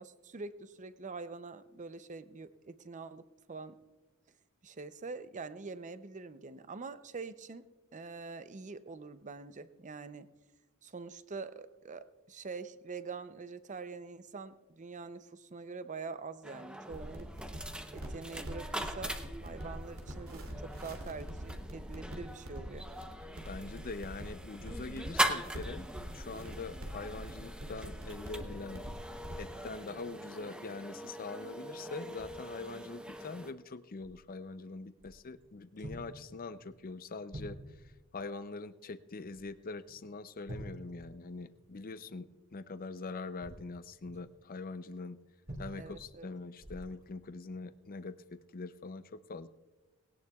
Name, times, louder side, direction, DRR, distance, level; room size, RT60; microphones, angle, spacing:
voice 1, 0.0-3.8 4.6-7.6 7.9-10.3 10.8-17.3 17.9-22.9 45.8-46.3, right 4 dB, 35° right, 12 dB, 0.6 m, -45 dB
sound 1, 16.4-33.5, right 1 dB, 5° right, 0.8 m, -41 dB
sound 2, 16.9-29.4, equal, 80° right, 2.7 m, -44 dB
voice 2, 23.5-28.8 29.4-37.6 38.1-45.2 45.6-49.5, left 3 dB, 40° left, 13 dB, 0.6 m, -43 dB
sound 3, 32.2-32.5 33.1-33.2 34.0-34.2 35.0-35.5 35.8-36.2 36.6-36.8 37.3-38.0 39.3-39.6 39.8-40.0 40.5-41.7 43.2-44.3 45.5-46.1 46.6-47.0 47.5-47.7, right 1 dB, 50° right, 4.0 m, -47 dB
19.5 x 17.5 x 2.4 m, 1.2 s
head